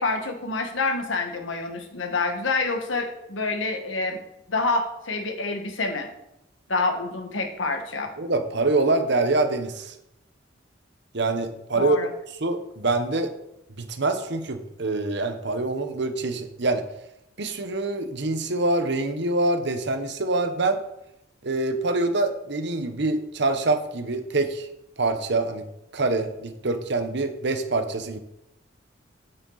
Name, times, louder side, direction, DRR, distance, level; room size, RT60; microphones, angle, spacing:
voice 1, 0.0-4.2 4.5-6.1 6.7-8.1 11.8-12.1, left 3 dB, 80° left, 5 dB, 1.5 m, -27 dB
voice 2, 8.2-9.9 11.1-12.0 12.4-13.3 13.8-16.8 17.4-20.8 21.4-24.7 25.0-25.6 25.9-28.2, right 2 dB, 60° right, 8 dB, 1.0 m, -25 dB
9.0 x 7.8 x 4.0 m, 0.84 s
head